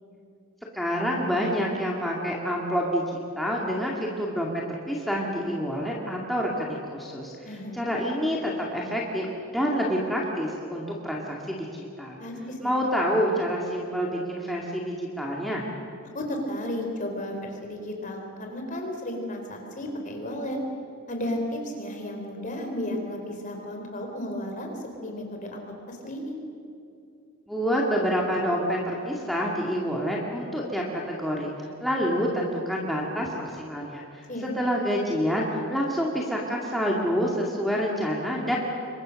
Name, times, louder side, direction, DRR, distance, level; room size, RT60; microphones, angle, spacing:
voice 1, 0.7-7.3 7.7-9.3 9.5-12.2 12.6-15.7 27.5-31.5 31.8-34.2 34.6-38.6, equal, ahead, -4 dB, 2.3 m, -27 dB
voice 2, 7.4-7.9 12.2-12.7 16.1-20.6 21.1-26.4 34.3-34.6, left 1 dB, 35° left, 2 dB, 4.0 m, -33 dB
27.5 x 23.0 x 6.6 m, 2.6 s
head